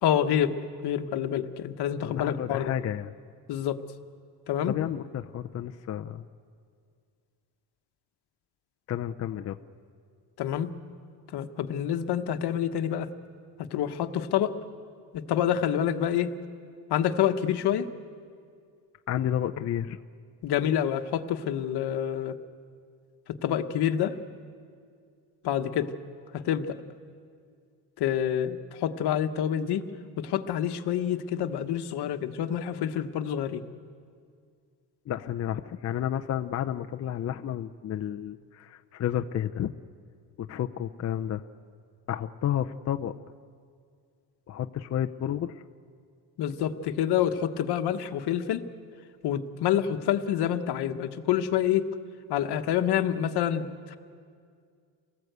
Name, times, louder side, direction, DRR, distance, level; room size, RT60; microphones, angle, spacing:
voice 1, 0.0-2.7 3.5-3.8 4.5-4.7 10.4-10.7 11.3-13.1 13.7-14.5 15.1-16.3 16.9-17.9 20.4-22.4 23.3-24.2 25.4-25.9 26.3-26.8 28.0-29.8 30.2-33.6 46.4-48.6 49.2-51.9 52.3-54.0, left 10 dB, 65° left, 9 dB, 1.2 m, -27 dB
voice 2, 2.0-3.1 4.7-6.2 8.9-9.6 19.1-20.0 35.1-39.7 40.4-41.4 42.1-43.1 44.5-45.6, left 10 dB, 35° left, 6 dB, 0.5 m, -31 dB
28.0 x 18.5 x 8.1 m, 2.2 s
cardioid pair, 150°, 43 cm